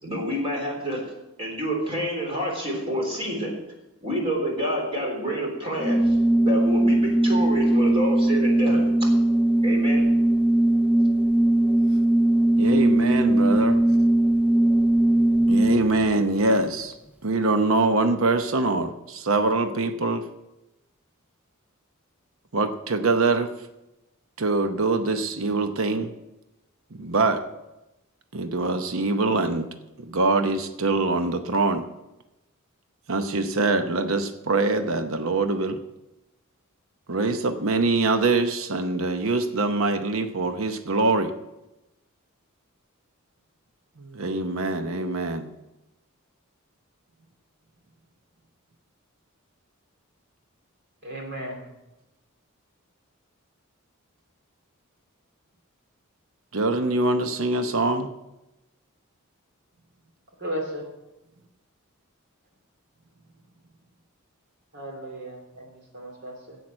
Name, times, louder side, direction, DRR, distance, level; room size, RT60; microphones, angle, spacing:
voice 1, 0.0-1.1 1.4-3.6 4.0-6.2 6.4-9.1 9.6-10.1, equal, 25° right, 0 dB, 3.6 m, -28 dB
Organ, 5.8-16.1, right 1 dB, 5° right, 0.6 m, -20 dB
voice 2, 12.6-13.8 15.5-16.9 17.2-20.2 22.5-23.5 24.4-26.1 27.0-27.4 28.3-29.7 30.0-31.9 33.1-35.8 37.1-41.3 44.0-45.5 56.5-58.1, right 3 dB, 70° right, 8 dB, 0.8 m, -24 dB
voice 3, 51.0-51.7 60.4-60.9 64.7-66.6, right 1 dB, 50° right, 1 dB, 2.7 m, -35 dB
10.5 x 8.3 x 7.6 m, 0.96 s
head